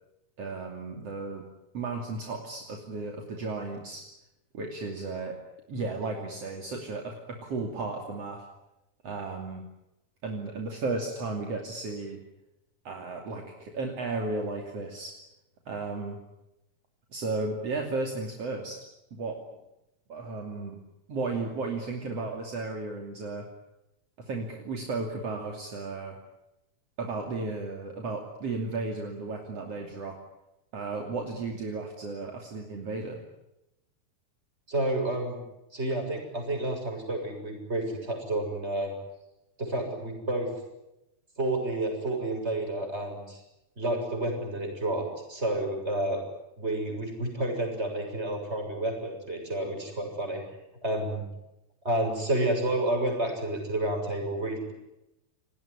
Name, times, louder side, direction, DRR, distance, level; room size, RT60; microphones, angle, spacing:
voice 1, 0.4-1.5 1.7-4.0 4.5-5.4 5.7-8.5 9.0-9.6 10.2-12.2 12.9-15.1 15.7-16.2 17.1-18.8 19.1-19.4 20.1-20.8 21.1-23.5 24.2-26.2 27.0-30.2 30.7-33.2, right 3 dB, 55° right, 2 dB, 3.7 m, -34 dB
voice 2, 34.7-35.4 35.7-38.9 39.6-40.5 41.4-43.4 43.8-46.2 46.6-50.4 50.8-51.2 51.8-54.7, right 1 dB, 20° right, 3 dB, 7.4 m, -30 dB
29.5 x 19.5 x 10.0 m, 0.91 s
omnidirectional pair, 3.4 m